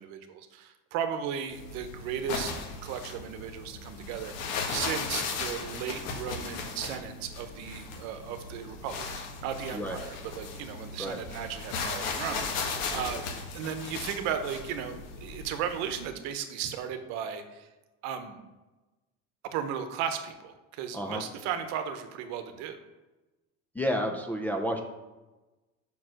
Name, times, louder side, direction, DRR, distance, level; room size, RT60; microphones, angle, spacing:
voice 1, 0.0-2.5 2.8-4.3 4.7-13.2 13.5-17.7 18.0-18.4 19.5-22.8, right 8 dB, 70° right, 9 dB, 0.9 m, -35 dB
sound 1, 1.5-16.1, left 4 dB, 60° left, 1.3 m, -37 dB
voice 2, 23.8-24.8, equal, 5° left, 2 dB, 0.3 m, -30 dB
5.5 x 4.8 x 6.2 m, 1.1 s
cardioid pair, 175°, 29 cm